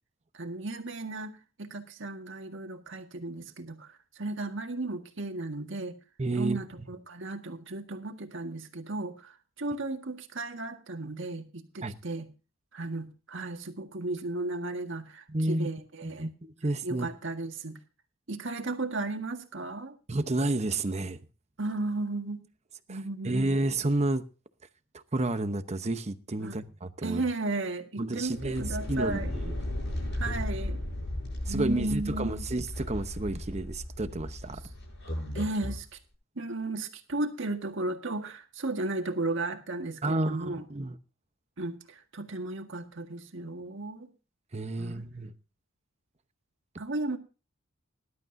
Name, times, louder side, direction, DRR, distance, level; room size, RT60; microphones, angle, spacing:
voice 1, 0.3-1.3 1.6-6.0 6.4-12.3 12.7-16.3 16.8-17.8 18.3-20.0 21.6-22.4 22.9-23.6 26.4-26.6 27.0-29.3 30.1-30.8 31.5-32.4 35.3-35.9 36.4-40.7 41.6-44.1 44.8-45.1 46.8-47.2, right 2 dB, 65° right, 1.7 m, -35 dB
voice 2, 6.2-6.6 11.8-12.0 15.3-15.7 16.0-17.1 20.1-21.2 22.9-23.0 23.2-24.2 24.9-27.2 28.0-29.5 30.3-30.4 31.5-34.6 40.0-41.0 44.5-45.3, right 2 dB, 30° right, 0.9 m, -31 dB
sound 1, 28.2-35.8, left 1 dB, 60° left, 8.0 m, -35 dB
19.5 x 11.5 x 2.7 m
head